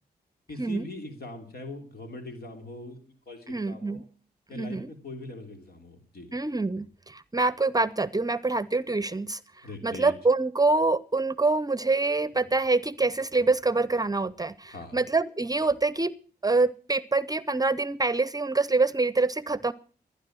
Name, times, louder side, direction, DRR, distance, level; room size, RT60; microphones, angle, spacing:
voice 1, 0.5-4.0 4.5-6.3 9.6-10.1 14.7-15.0, left 2 dB, 70° left, 4 dB, 3.2 m, -41 dB
voice 2, 3.5-4.0 4.5-4.9 6.3-16.1 16.4-19.7, right 3 dB, 20° right, 18 dB, 0.7 m, -26 dB
20.0 x 10.5 x 6.3 m, 0.41 s
cardioid pair, 60°, 17 cm